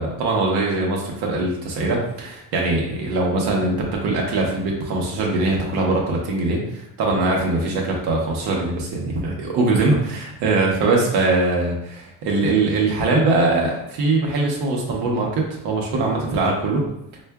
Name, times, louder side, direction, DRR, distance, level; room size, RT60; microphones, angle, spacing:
voice 1, 0.0-16.8, right 2 dB, 85° right, -1 dB, 0.9 m, -22 dB
4.5 x 2.4 x 2.3 m, 0.82 s
cardioid pair, 175°, 38 cm